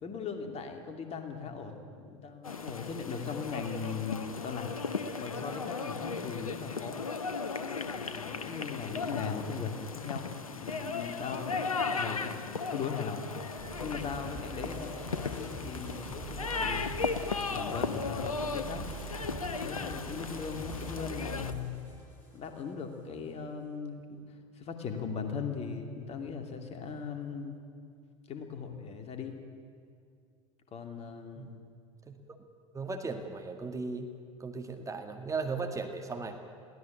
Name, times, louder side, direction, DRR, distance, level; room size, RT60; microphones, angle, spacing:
voice 1, 0.0-1.8 2.0-4.8 5.2-7.0 7.5-13.2 13.8-16.9 17.5-18.9 19.6-21.8 22.3-24.0 24.6-27.6 28.3-29.4 30.7-31.6, left 5 dB, 35° left, 5 dB, 2.7 m, -39 dB
sound 1, 2.4-21.5, left 4 dB, 85° left, 0.9 m, -36 dB
sound 2, 13.6-22.6, right 3 dB, 10° left, 7.8 m, -44 dB
voice 2, 32.7-34.1 34.4-36.4, right 4 dB, 20° right, 5 dB, 2.0 m, -37 dB
22.0 x 17.0 x 8.6 m, 2.3 s
figure-of-eight pair, 75°, 17 cm